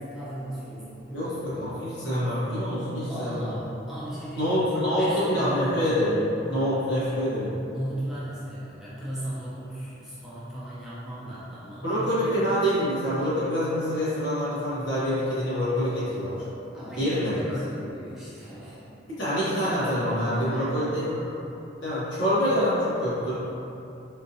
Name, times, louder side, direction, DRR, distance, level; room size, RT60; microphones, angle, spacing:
voice 1, 0.0-2.0 3.1-5.8 7.7-12.9 16.7-18.8 20.3-20.9, equal, 5° right, -11 dB, 0.7 m, -37 dB
voice 2, 1.1-3.5 4.4-7.5 11.8-16.5 17.0-17.6 19.2-21.3 21.8-23.3, equal, 85° left, -11 dB, 1.3 m, -26 dB
3.7 x 2.6 x 2.7 m, 2.8 s
head